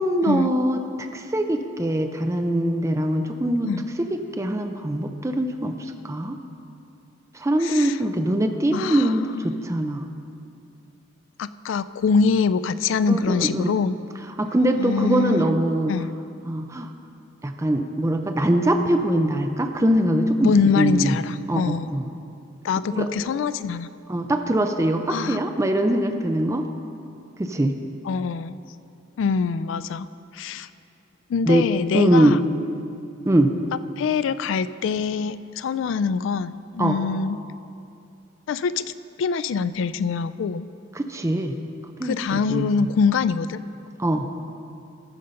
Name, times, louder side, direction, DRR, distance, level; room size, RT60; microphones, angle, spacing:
voice 1, 0.0-3.7 4.0-6.4 7.3-10.1 13.1-13.7 14.4-15.9 16.4-16.9 17.4-21.2 21.5-22.1 22.9-23.1 24.1-26.6 27.4-27.8 31.4-31.7 31.9-32.4 33.3-33.5 36.8-37.0 40.9-41.5 42.0-42.9 44.0-44.3, right 1 dB, 15° right, 6 dB, 0.4 m, -22 dB
voice 2, 7.6-8.0 8.7-9.0 11.4-14.0 14.8-15.5 15.9-16.1 20.4-21.9 22.6-23.9 25.1-25.4 28.1-28.6 29.2-30.1 30.3-30.7 31.3-32.4 34.0-37.4 38.5-38.8 39.2-40.7 42.0-43.6, left 5 dB, 75° left, 15 dB, 0.3 m, -24 dB
14.0 x 5.5 x 5.2 m, 2.5 s
head